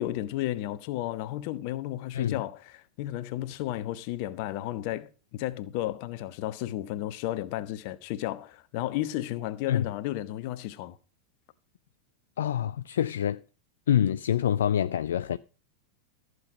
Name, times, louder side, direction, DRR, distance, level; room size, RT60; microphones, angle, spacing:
voice 1, 0.0-11.0, left 14 dB, 45° left, 1.1 m, -33 dB
voice 2, 12.4-13.4 13.9-15.4, left 10 dB, 60° left, 0.5 m, -26 dB
14.5 x 7.9 x 5.1 m
figure-of-eight pair, 90°, 0 cm